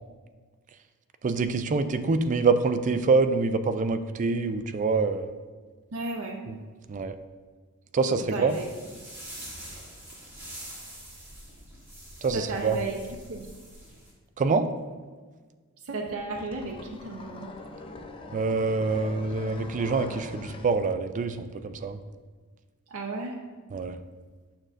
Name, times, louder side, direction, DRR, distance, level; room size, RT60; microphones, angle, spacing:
voice 1, 1.2-5.3 6.5-6.6 6.9-7.1 7.9-8.6 12.2-12.8 14.4-14.7 18.3-22.0 23.7-24.0, right 4 dB, 35° right, 9 dB, 0.3 m, -25 dB
voice 2, 5.9-6.4 8.3-8.6 12.3-13.0 13.3-13.5 15.9-17.5 22.9-23.4, right 3 dB, 70° right, 0 dB, 0.7 m, -33 dB
sound 1, 8.5-14.1, right 1 dB, 10° right, 2.1 m, -45 dB
sound 2, 16.1-20.8, left 2 dB, 25° left, 0.5 m, -42 dB
8.8 x 6.3 x 2.5 m, 1.5 s
head